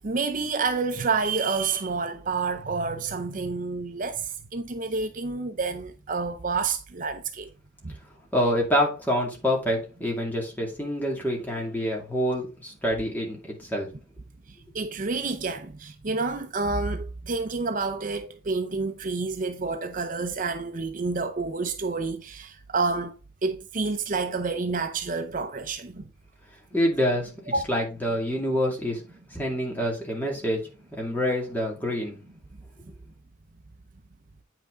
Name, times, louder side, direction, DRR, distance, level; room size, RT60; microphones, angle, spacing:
voice 1, 0.0-7.5 7.8-8.0 14.5-23.2 23.4-26.1 27.5-27.6, right 4 dB, 40° right, 0.6 m, -29 dB
voice 2, 8.3-13.9 26.7-27.3 27.7-29.0 29.3-30.6 31.0-32.2, equal, 10° left, 2.3 m, -26 dB
8.9 x 5.8 x 3.7 m
head